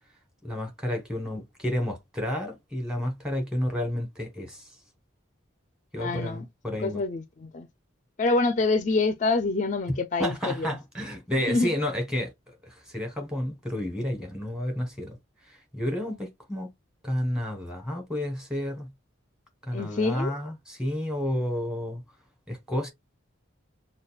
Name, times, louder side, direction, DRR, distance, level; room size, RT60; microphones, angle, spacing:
voice 1, 0.4-4.6 5.9-7.0 10.2-15.2 15.5-16.7 17.0-18.9 19.6-22.0 22.5-22.9, left 1 dB, 5° right, 1.2 m, -31 dB
voice 2, 6.0-6.4 6.8-7.7 8.2-10.7 11.5-11.7 19.7-20.3, left 3 dB, 40° left, 0.4 m, -26 dB
6.3 x 2.2 x 2.3 m
head